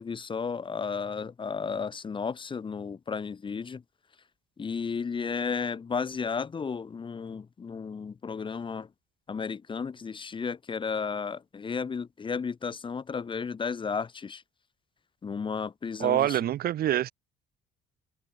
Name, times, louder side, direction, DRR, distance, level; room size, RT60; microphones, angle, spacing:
voice 1, 0.0-3.8 4.6-8.9 9.3-14.4 15.2-16.5, left 5 dB, 30° left, 1.6 m, -33 dB
voice 2, 16.0-17.1, right 12 dB, 65° right, 3.0 m, -25 dB
open air
cardioid pair, 110°, 17 cm